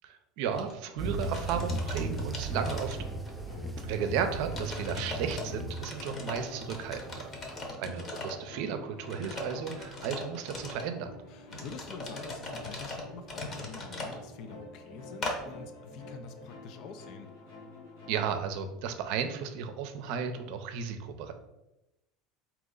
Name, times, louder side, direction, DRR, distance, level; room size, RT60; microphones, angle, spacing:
voice 1, 0.0-3.0 3.8-7.3 7.8-11.1 18.1-21.3, right 7 dB, 65° right, 7 dB, 0.5 m, -34 dB
sound 1, 0.5-0.7 1.1-3.4 3.8-3.9 4.5-5.4 5.7-8.5 9.0-10.9 11.5-14.2 15.2-15.4, left 2 dB, 35° left, 0.9 m, -40 dB
sound 2, 1.0-7.7, right 2 dB, 5° right, 0.4 m, -36 dB
sound 3, 2.5-18.4, left 2 dB, 80° left, 1.4 m, -49 dB
voice 2, 3.5-3.9 7.4-7.9 11.3-17.3, left 5 dB, 60° left, 7 dB, 0.5 m, -47 dB
4.0 x 2.9 x 3.8 m, 0.93 s
supercardioid pair, 125°, 0 cm